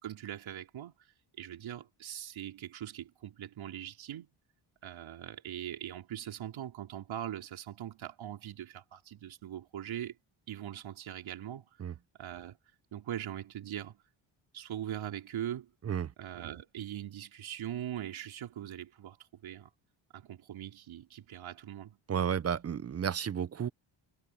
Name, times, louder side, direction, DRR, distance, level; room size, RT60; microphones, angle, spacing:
voice 1, 0.0-0.9 1.4-4.3 4.8-10.2 10.5-11.7 12.2-12.6 12.9-14.0 14.5-15.7 16.2-19.7 20.1-22.0, right 11 dB, 70° right, 3.9 m, -41 dB
voice 2, 22.1-23.7, right 8 dB, 30° right, 0.6 m, -32 dB
cardioid pair, 150°, 48 cm